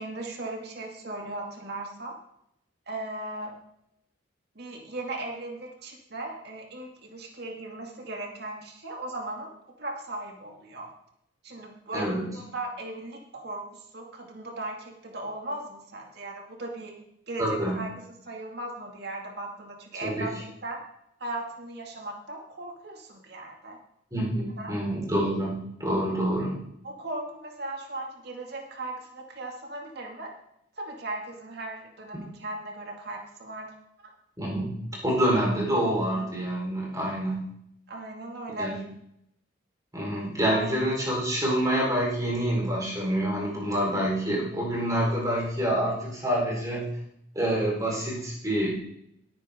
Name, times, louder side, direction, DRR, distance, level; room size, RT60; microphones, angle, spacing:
voice 1, 0.0-2.2 2.9-3.6 4.6-9.5 9.8-10.9 11.4-17.9 18.2-20.8 21.2-23.8 24.6-24.7 26.8-30.3 30.8-33.7 34.0-34.1 37.9-38.7 40.5-40.7, right 2 dB, 60° right, 1 dB, 2.4 m, -37 dB
voice 2, 11.9-12.3 17.4-17.8 20.0-20.3 24.1-25.5 25.8-26.6 34.4-34.8 35.0-37.5 38.6-38.7 39.9-47.0 47.3-48.7, right 1 dB, 20° right, -4 dB, 4.5 m, -27 dB
17.5 x 9.4 x 3.8 m, 0.76 s
head